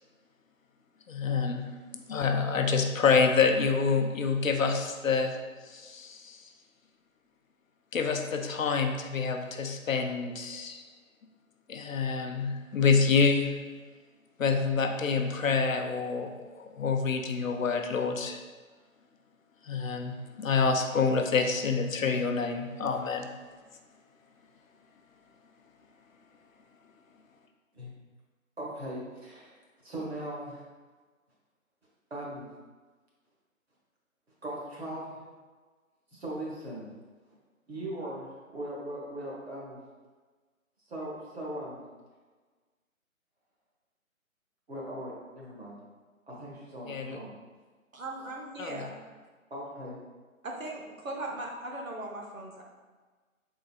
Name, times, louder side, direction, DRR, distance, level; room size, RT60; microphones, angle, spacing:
voice 1, 1.1-5.4 5.7-6.4 7.9-10.8 11.7-13.6 14.4-18.4 19.7-23.3 46.9-47.2 48.6-48.9, left 5 dB, 70° left, 5 dB, 0.5 m, -27 dB
voice 2, 28.6-29.5 29.8-30.6 32.1-32.5 34.4-35.2 36.1-36.9 37.7-39.8 40.9-41.8 44.7-45.8 46.3-47.3 49.5-50.0, right 1 dB, 45° right, -5 dB, 1.3 m, -39 dB
voice 3, 47.9-48.9 50.4-52.6, right 2 dB, 70° right, 0 dB, 0.9 m, -38 dB
4.2 x 3.9 x 2.3 m, 1.4 s
hypercardioid pair, 180°, 42 cm